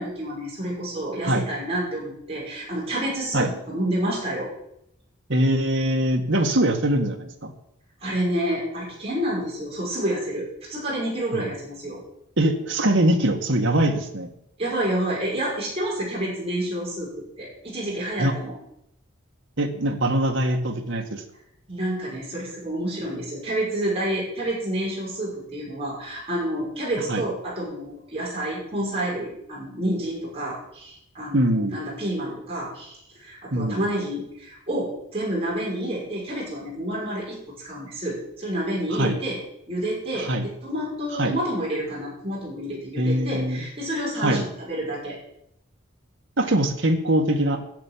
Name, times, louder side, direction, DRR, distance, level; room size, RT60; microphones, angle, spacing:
voice 1, 0.0-4.5 8.0-12.0 14.6-17.1 17.4-18.6 21.7-39.4 39.7-45.2, right 1 dB, 30° right, -6 dB, 6.0 m, -29 dB
voice 2, 5.3-7.5 11.3-11.5 12.4-14.3 18.2-18.3 19.6-21.2 27.1-27.2 31.3-31.8 33.5-33.9 38.9-39.2 40.2-40.5 41.2-41.3 43.0-43.6 44.2-44.5 46.4-47.6, right 1 dB, 60° right, 4 dB, 1.7 m, -22 dB
11.5 x 7.0 x 9.2 m, 0.77 s
head